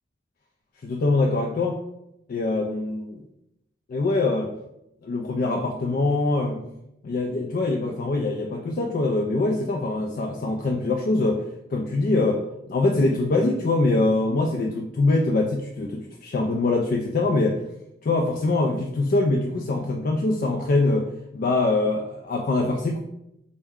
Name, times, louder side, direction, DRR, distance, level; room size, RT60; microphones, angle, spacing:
voice 1, 0.8-1.8 2.3-3.2 3.9-4.5 5.0-6.6 7.0-11.4 11.7-17.6 18.0-21.1 21.3-23.0, left 2 dB, 50° left, 1 dB, 0.3 m, -23 dB
4.5 x 2.1 x 3.5 m, 0.83 s
head